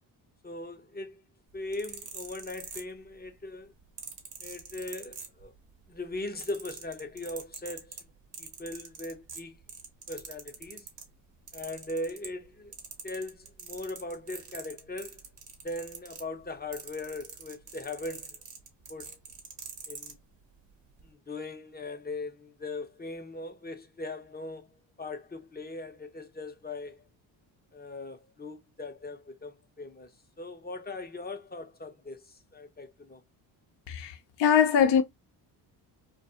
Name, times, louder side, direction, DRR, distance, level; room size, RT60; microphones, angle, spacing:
voice 1, 0.4-1.2 1.5-3.7 4.4-5.5 5.9-8.1 8.4-9.6 10.1-10.9 11.5-12.7 13.0-15.2 15.6-18.4 18.9-19.2 19.9-20.2 21.0-27.0 27.7-33.2, left 2 dB, 20° left, 0.7 m, -39 dB
sound 1, 1.6-3.3 4.0-5.7 6.0-11.1 11.5-12.5 12.7-20.2 20.9-21.1, right 6 dB, 55° right, 1.0 m, -44 dB
voice 2, 33.9-35.0, left 8 dB, 60° left, 0.7 m, -22 dB
2.3 x 2.3 x 2.7 m
supercardioid pair, 55°, 49 cm